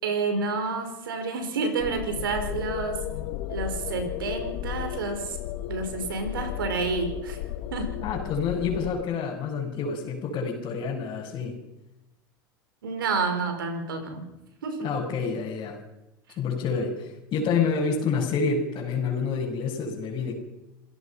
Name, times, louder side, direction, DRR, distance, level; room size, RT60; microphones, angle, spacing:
voice 1, 0.0-3.1 3.5-5.4 5.7-7.4 7.7-8.0 12.8-14.2 14.6-14.9, right 4 dB, 80° right, 6 dB, 5.0 m, -29 dB
sound 1, 1.8-9.0, left 13 dB, 60° left, 1.1 m, -34 dB
voice 2, 8.0-11.5 14.8-15.8 16.4-20.3, left 5 dB, 40° left, -4 dB, 5.6 m, -28 dB
27.5 x 16.5 x 5.8 m, 0.95 s
hypercardioid pair, 90°, 11 cm